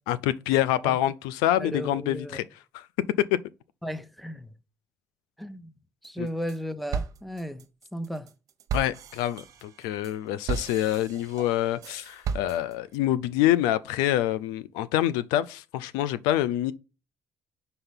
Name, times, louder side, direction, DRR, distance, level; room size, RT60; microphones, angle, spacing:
voice 1, 0.1-2.4 2.7-2.9 6.2-6.3 8.7-16.7, left 13 dB, 85° left, 0.4 m, -26 dB
voice 2, 1.6-2.4 3.8-4.5 5.4-5.7 6.0-8.3, equal, ahead, 0.8 m, -35 dB
sound 1, 6.0-6.6 6.9-13.0, right 6 dB, 60° right, 0.8 m, -35 dB
5.5 x 4.1 x 5.2 m
supercardioid pair, 60°, 7 cm